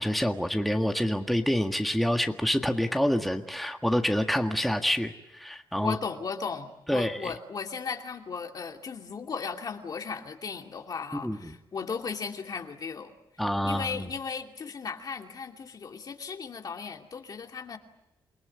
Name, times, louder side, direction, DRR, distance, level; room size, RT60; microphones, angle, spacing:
voice 1, 0.0-6.0 6.9-7.3 11.2-11.5 13.4-14.1, equal, ahead, 4 dB, 1.7 m, -27 dB
voice 2, 5.8-13.1 13.6-17.8, left 5 dB, 50° left, 3 dB, 2.6 m, -36 dB
28.5 x 19.0 x 9.6 m, 0.90 s
cardioid pair, 95°, 8 cm